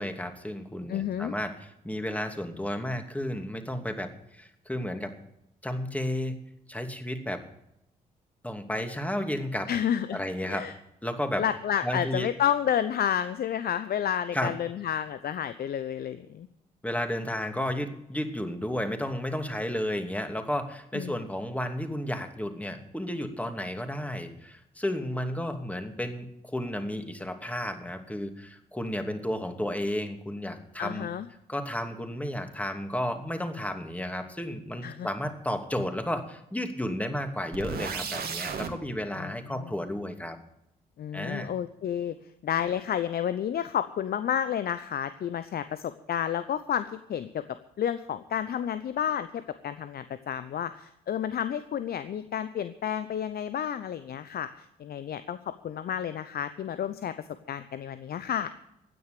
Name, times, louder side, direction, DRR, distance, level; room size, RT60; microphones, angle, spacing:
voice 1, 0.0-5.1 5.6-6.4 6.7-7.4 8.4-9.7 10.1-10.7 11.0-11.5 11.8-12.3 14.3-14.5 16.8-31.1 31.5-40.4 41.1-41.5, left 1 dB, 5° left, 6 dB, 2.6 m, -32 dB
voice 2, 0.9-1.3 9.7-10.2 10.4-10.7 11.4-16.5 20.9-21.2 30.8-31.3 34.8-35.1 39.2-39.3 39.6-39.7 41.0-42.1 42.4-47.4 47.8-54.5 54.8-55.4 55.6-57.1 57.5-58.5, left 9 dB, 55° left, 12 dB, 0.8 m, -30 dB
sound 1, 37.5-38.7, right 6 dB, 55° right, 2.2 m, -34 dB
16.0 x 9.7 x 6.8 m, 0.80 s
hypercardioid pair, 45°, 19 cm